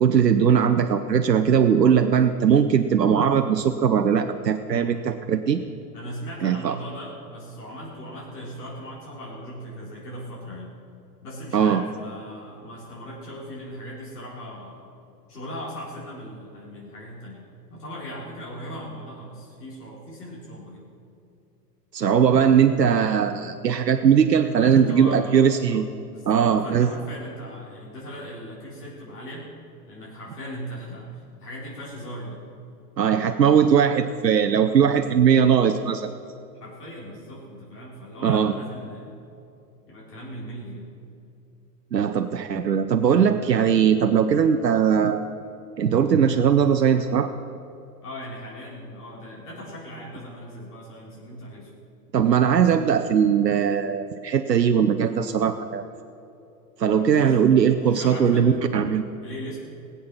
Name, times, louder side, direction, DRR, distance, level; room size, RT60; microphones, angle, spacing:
voice 1, 0.0-5.6 6.4-6.7 11.5-11.8 21.9-25.9 26.3-26.9 33.0-36.1 38.2-38.6 41.9-45.2 45.8-47.3 52.1-55.8 56.8-59.1, right 7 dB, 85° right, 7 dB, 0.7 m, -20 dB
voice 2, 5.9-10.7 11.2-14.9 15.3-17.4 17.7-20.9 24.4-25.4 26.1-29.5 29.9-32.4 36.6-39.2 39.9-40.9 48.0-51.7 57.0-57.4 57.8-58.5 59.2-59.6, equal, 70° left, -6 dB, 4.0 m, -38 dB
19.0 x 8.4 x 6.0 m, 2.8 s
figure-of-eight pair, 95°, 48 cm